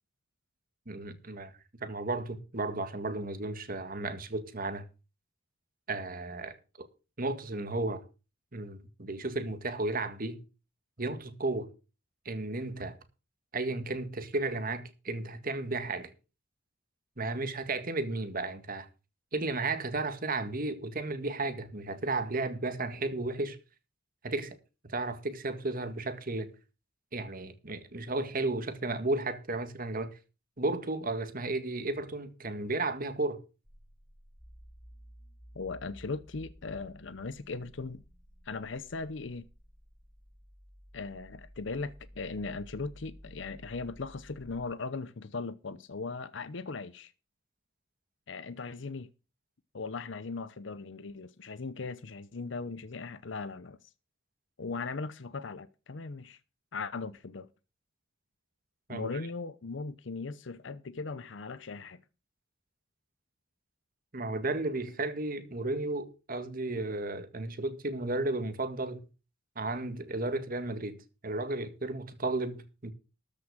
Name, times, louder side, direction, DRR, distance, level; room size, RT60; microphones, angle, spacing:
voice 1, 0.9-1.5 1.8-4.8 5.9-6.9 7.2-8.0 8.5-10.4 11.0-11.7 12.3-13.0 13.5-16.1 17.2-18.9 19.3-23.6 24.2-24.6 24.8-26.5 27.1-30.2 30.6-33.4 58.9-59.1 64.1-69.0 69.6-71.0 71.2-72.9, right 2 dB, 45° right, 1.8 m, -33 dB
sound 1, 33.7-44.6, equal, 5° left, 1.5 m, -54 dB
voice 2, 35.5-38.0 38.4-39.4 40.9-47.1 48.3-49.1 49.7-53.8 54.6-56.4 56.7-57.5 58.9-62.0, left 4 dB, 70° left, 0.7 m, -38 dB
13.5 x 6.1 x 6.4 m
head